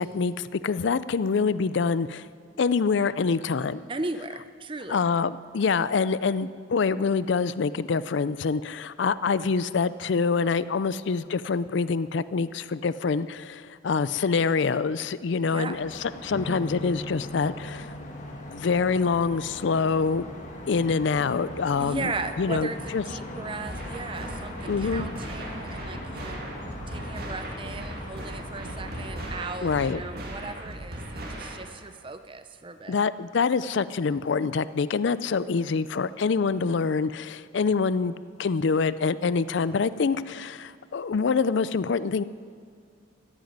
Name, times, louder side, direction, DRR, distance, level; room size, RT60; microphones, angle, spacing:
voice 1, 0.0-2.2 2.6-3.8 4.9-17.9 18.5-20.2 20.7-22.1 22.4-22.7 22.9-23.0 24.7-25.1 29.6-30.0 32.9-42.2, left 5 dB, 65° left, 16 dB, 0.4 m, -25 dB
voice 2, 3.9-5.0 15.5-15.8 21.8-26.4 26.9-33.0, right 3 dB, 25° right, 10 dB, 0.6 m, -37 dB
sound 1, 15.7-29.5, left 1 dB, 40° left, 1.7 m, -40 dB
sound 2, 16.3-23.9, equal, 15° left, 1.2 m, -44 dB
sound 3, 23.7-31.7, right 1 dB, 50° right, 2.3 m, -38 dB
15.0 x 9.1 x 9.3 m, 2.1 s
head